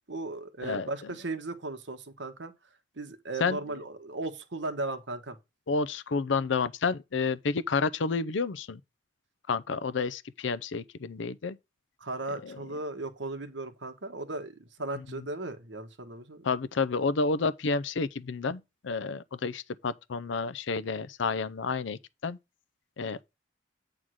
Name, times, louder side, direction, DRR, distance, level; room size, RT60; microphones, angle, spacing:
voice 1, 0.1-2.5 3.0-5.4 12.0-16.5, right 2 dB, 70° right, 1.3 m, -36 dB
voice 2, 3.4-3.8 5.7-8.8 9.5-11.6 12.4-12.6 16.4-22.4 23.0-23.3, left 4 dB, 75° left, 0.5 m, -30 dB
9.0 x 3.7 x 6.3 m
head